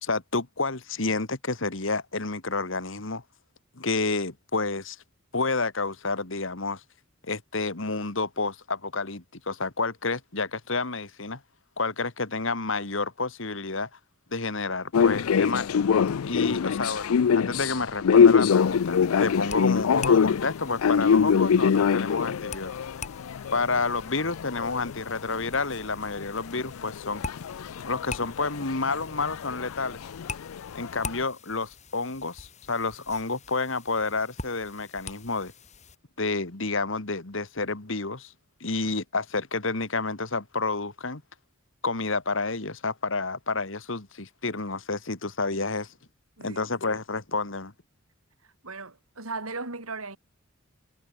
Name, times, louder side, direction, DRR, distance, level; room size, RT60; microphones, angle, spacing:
voice 1, 0.0-3.2 3.8-5.0 5.3-6.8 7.3-11.4 11.8-13.9 14.3-15.7 16.2-22.7 23.5-27.2 27.8-30.0 30.7-35.5 36.2-38.3 38.6-41.2 41.8-45.9 46.4-47.7, left 3 dB, 65° left, 2.0 m, -29 dB
sound 1, 14.9-25.8 26.0-31.2, left 6 dB, 85° left, 0.4 m, -24 dB
sound 2, 18.5-36.0, left 4 dB, 35° left, 6.5 m, -44 dB
voice 2, 48.6-50.2, right 3 dB, 90° right, 4.9 m, -36 dB
head